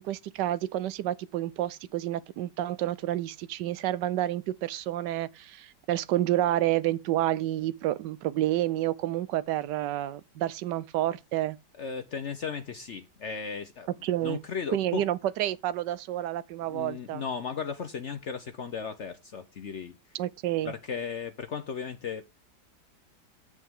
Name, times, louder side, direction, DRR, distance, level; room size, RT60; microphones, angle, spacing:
voice 1, 0.0-11.6 14.0-14.4 14.7-17.2 20.1-20.7, right 13 dB, 80° right, 1.2 m, -29 dB
voice 2, 11.8-13.9 14.2-15.0 16.7-20.0 20.6-22.2, left 6 dB, 55° left, 0.9 m, -36 dB
8.3 x 7.7 x 3.6 m
omnidirectional pair, 1.9 m